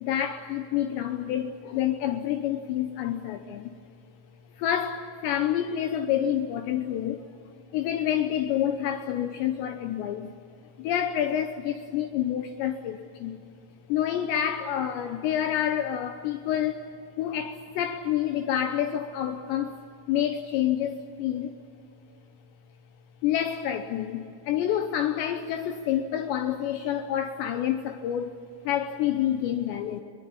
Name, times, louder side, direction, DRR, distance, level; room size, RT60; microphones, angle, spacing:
voice 1, 0.0-3.7 4.6-7.2 7.7-10.3 10.8-13.4 13.9-16.9 17.2-19.8 20.1-21.5 23.2-28.4 28.6-30.0, left 10 dB, 75° left, 2.7 m, -28 dB
22.5 x 22.0 x 8.6 m
omnidirectional pair, 5.8 m